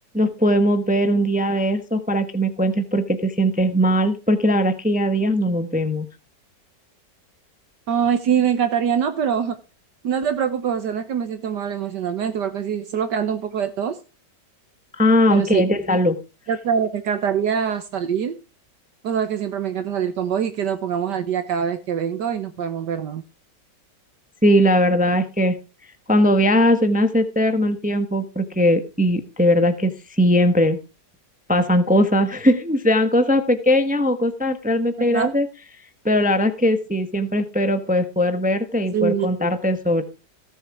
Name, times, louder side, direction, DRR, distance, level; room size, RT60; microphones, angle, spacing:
voice 1, 0.1-6.1 14.9-16.2 24.4-25.6 26.1-30.8 31.5-35.5 36.0-40.0, equal, 5° right, 9 dB, 0.9 m, -19 dB
voice 2, 7.9-9.6 10.0-14.0 15.3-15.6 16.5-18.4 19.0-23.2 35.1-35.3 38.9-39.5, right 8 dB, 70° right, 9 dB, 1.7 m, -24 dB
17.5 x 7.3 x 4.8 m, 0.31 s
omnidirectional pair, 1.9 m